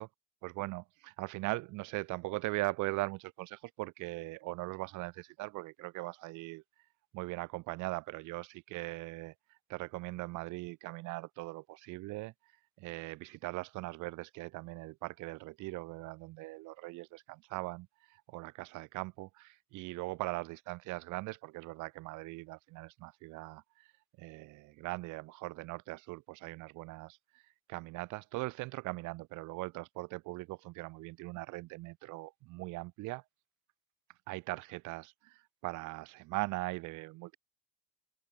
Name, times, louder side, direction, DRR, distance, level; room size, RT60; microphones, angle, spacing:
voice 1, 0.4-6.6 7.1-9.3 9.7-12.3 12.8-23.9 24.2-27.2 27.7-33.2 34.3-37.4, right 22 dB, 65° right, 3.4 m, -40 dB
open air
cardioid pair, 160°, 33 cm